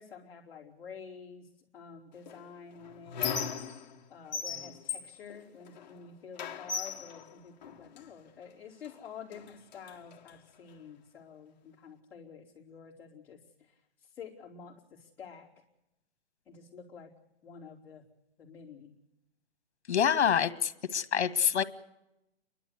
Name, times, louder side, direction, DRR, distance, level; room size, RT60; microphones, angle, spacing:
voice 1, 0.0-3.7 4.1-15.5 16.4-17.1 17.4-18.0 18.4-18.9, left 6 dB, 5° left, -10 dB, 3.3 m, -49 dB
Squeak, 2.3-4.0 4.3-6.0 6.4-8.1 8.8-9.0 9.3-10.3, left 6 dB, 40° left, 1.4 m, -38 dB
voice 2, 19.9-21.6, left 8 dB, 70° left, 11 dB, 1.6 m, -26 dB
29.5 x 12.0 x 8.3 m, 0.92 s
hypercardioid pair, 180°, 34 cm